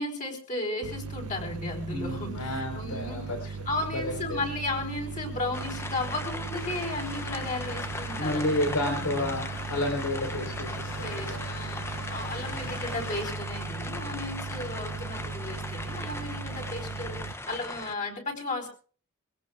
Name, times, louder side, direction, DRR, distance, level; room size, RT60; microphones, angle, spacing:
voice 1, 0.0-8.7 9.0-9.3 11.0-18.7, left 2 dB, 35° left, 1 dB, 4.6 m, -35 dB
sound 1, 0.8-17.3, right 4 dB, 80° right, 0.8 m, -38 dB
voice 2, 1.9-3.4 3.8-4.4 8.2-11.4 12.5-12.8, left 1 dB, 90° left, 2 dB, 4.3 m, -31 dB
sound 2, 5.5-17.9, left 2 dB, 10° left, 0.8 m, -39 dB
sound 3, 6.6-13.3, left 4 dB, 65° left, 2.9 m, -44 dB
24.0 x 17.0 x 2.4 m, 0.40 s
head